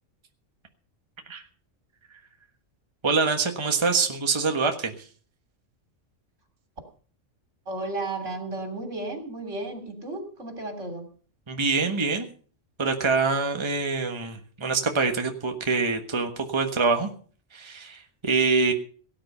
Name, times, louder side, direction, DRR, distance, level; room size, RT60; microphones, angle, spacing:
voice 1, 3.0-4.9 11.5-12.3 12.8-17.1 17.5-18.7, right 4 dB, 25° right, 5 dB, 1.4 m, -25 dB
voice 2, 7.7-11.1, right 2 dB, 75° right, 6 dB, 3.7 m, -33 dB
18.0 x 9.6 x 5.6 m, 0.43 s
omnidirectional pair, 1.3 m